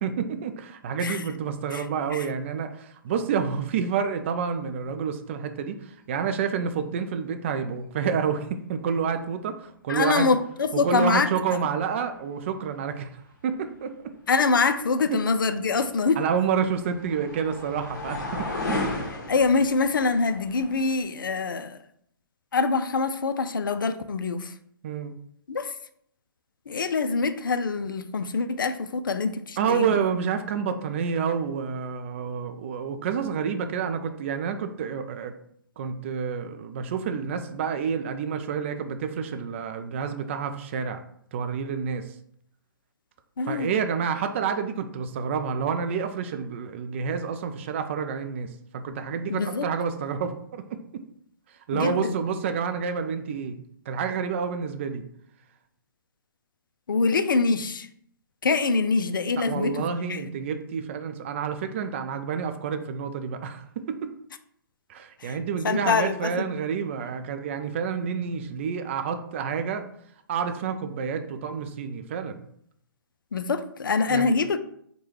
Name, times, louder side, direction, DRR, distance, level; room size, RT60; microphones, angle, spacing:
voice 1, 0.0-10.3 10.7-14.1 15.1-15.2 16.2-18.8 24.8-25.1 29.6-35.4 35.8-41.0 41.3-42.1 43.5-51.0 51.7-55.0 59.4-64.1 64.9-69.9 70.3-72.4 74.1-74.3, right 6 dB, 35° right, 0.3 m, -29 dB
voice 2, 9.9-11.3 14.3-16.2 19.3-21.8 22.5-24.5 25.5-25.7 26.7-30.0 43.4-43.7 49.3-49.7 51.7-52.2 56.9-57.9 58.4-59.8 60.1-60.3 65.2-65.4 65.6-66.5 73.3-74.6, left 4 dB, 65° left, 0.4 m, -25 dB
sound 1, 15.9-21.1, left 2 dB, 50° left, 0.9 m, -34 dB
4.5 x 2.2 x 3.1 m
figure-of-eight pair, 130°, 12 cm